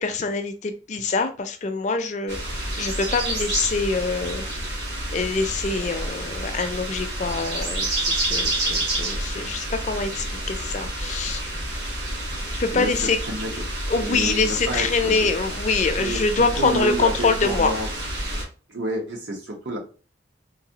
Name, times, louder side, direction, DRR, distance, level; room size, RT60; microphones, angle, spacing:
voice 1, 0.0-4.5 5.1-11.4 12.5-13.2 13.9-17.7, left 4 dB, 40° left, 8 dB, 0.4 m, -25 dB
sound 1, 2.3-18.4, right 1 dB, 60° right, 1.3 m, -29 dB
voice 2, 12.7-13.5 14.0-15.3 16.0-17.9 18.7-19.8, right 1 dB, 80° right, 0 dB, 1.1 m, -30 dB
3.9 x 2.6 x 2.8 m, 0.37 s
head